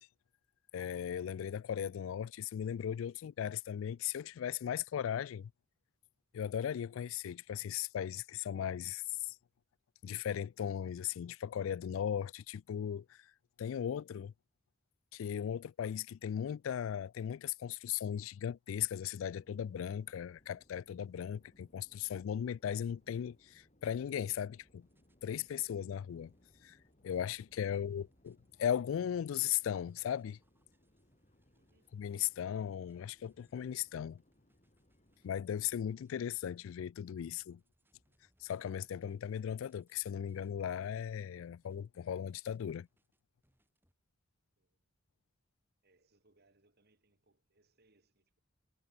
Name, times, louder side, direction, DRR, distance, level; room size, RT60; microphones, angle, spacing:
voice 1, 0.7-5.5 6.3-9.4 10.0-13.3 13.6-14.3 15.1-24.9 25.2-26.3 26.6-26.8 27.0-30.4 31.9-34.2 35.2-37.6 38.4-42.9, left 9 dB, 75° left, 0.3 m, -37 dB
sound 1, 19.2-35.9, left 1 dB, 35° left, 3.9 m, -70 dB
sound 2, 24.6-43.9, right 1 dB, 10° right, 5.1 m, -77 dB
voice 2, 27.7-28.2 31.5-31.9 44.6-44.9 45.8-48.4, right 2 dB, 50° right, 2.9 m, -73 dB
head